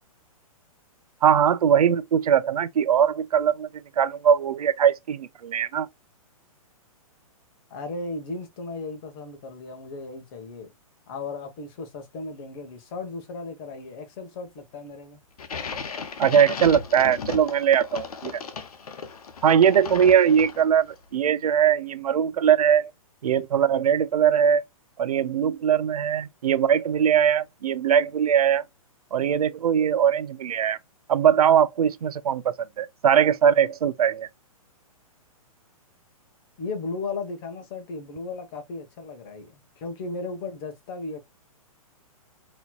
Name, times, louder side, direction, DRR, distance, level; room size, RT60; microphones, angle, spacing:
voice 1, 1.2-3.7 4.0-5.9 16.2-18.4 19.4-22.9 23.2-24.6 25.0-28.6 29.1-30.8 31.1-32.4 32.8-34.3, right 8 dB, 90° right, 0.5 m, -21 dB
voice 2, 7.7-10.7 11.1-15.2 36.6-41.2, left 3 dB, 40° left, 1.3 m, -35 dB
sound 1, 15.4-20.9, left 5 dB, 90° left, 0.9 m, -36 dB
4.1 x 3.0 x 2.3 m
hypercardioid pair, 150°, 18 cm